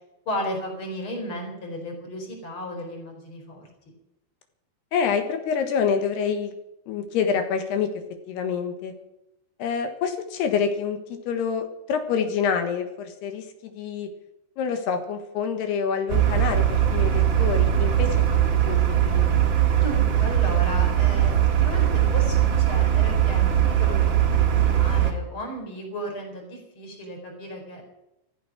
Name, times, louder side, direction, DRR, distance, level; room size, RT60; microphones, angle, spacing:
voice 1, 0.3-3.7 19.8-21.3 21.6-27.8, equal, 30° left, 2 dB, 4.6 m, -34 dB
voice 2, 4.9-6.5 6.9-7.9 8.3-8.9 9.6-11.0 11.3-14.1 14.6-19.3, left 6 dB, 70° left, 7 dB, 3.3 m, -27 dB
sound 1, 16.1-25.1, right 10 dB, 80° right, 1.0 m, -20 dB
14.5 x 14.5 x 6.1 m, 0.90 s
omnidirectional pair, 5.2 m